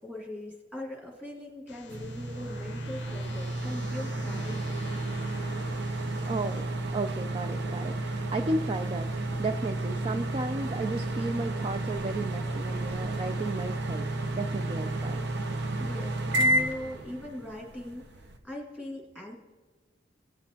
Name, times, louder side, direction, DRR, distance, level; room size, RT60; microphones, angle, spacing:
voice 1, 0.0-4.7 15.8-19.3, left 1 dB, 5° right, -2 dB, 2.2 m, -40 dB
sound 1, 1.7-6.6, left 6 dB, 65° left, 0.5 m, -49 dB
sound 2, 1.9-18.4, right 1 dB, 60° right, 0.8 m, -32 dB
voice 2, 6.2-14.0 14.3-15.3, right 2 dB, 30° right, 7 dB, 0.4 m, -34 dB
17.0 x 7.9 x 2.9 m, 1.4 s
head